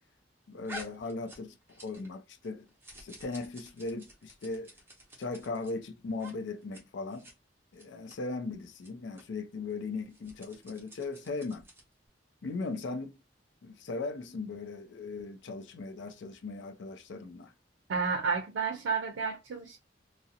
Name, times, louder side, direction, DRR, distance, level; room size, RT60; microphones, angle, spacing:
voice 1, 0.5-1.5 1.8-2.7 3.0-4.7 5.2-7.3 7.7-11.7 12.4-13.1 13.6-17.5, left 3 dB, 75° left, 0.4 m, -38 dB
sound 1, 0.6-2.2 2.4-5.7 6.1-6.3 6.6-6.8 7.1-7.3 7.7-8.2 8.7-8.9 9.1-9.2 10.0-11.9, right 1 dB, 10° right, 0.6 m, -50 dB
voice 2, 17.9-19.8, right 5 dB, 90° right, 0.4 m, -31 dB
2.4 x 2.0 x 2.6 m
head